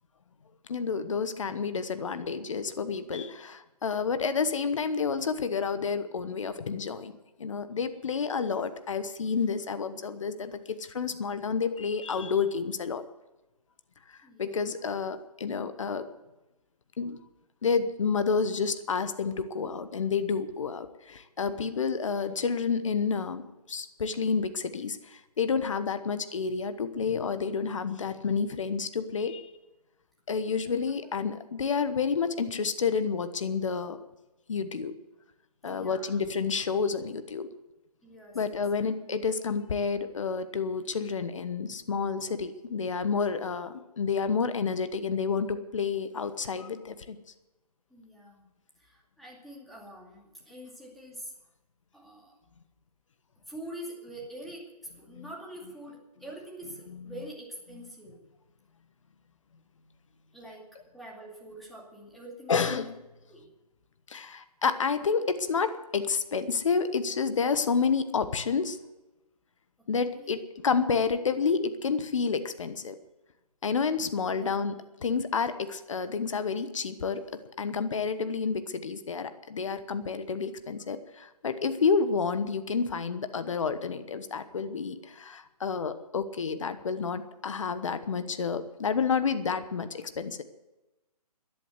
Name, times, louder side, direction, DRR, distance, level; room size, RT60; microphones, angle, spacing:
voice 1, 0.7-7.1 7.4-13.0 14.1-16.1 17.0-17.2 17.6-23.4 23.7-29.5 30.3-34.0 34.5-34.9 35.6-37.5 38.3-47.2 55.1-55.3 62.5-62.9 64.1-68.8 69.9-73.0 73.6-74.8 75.0-77.3 77.6-90.4, left 5 dB, 50° left, 11 dB, 1.2 m, -29 dB
voice 2, 14.2-14.6 30.6-31.1 35.7-36.2 38.0-38.7 47.9-48.5 48.8-51.3 51.9-52.4 53.5-58.2 60.3-62.8 63.3-63.5 70.0-70.4 74.3-74.6 88.0-88.3, right 1 dB, ahead, -3 dB, 2.3 m, -45 dB
13.0 x 11.0 x 8.2 m, 1.0 s
figure-of-eight pair, 145°, 20 cm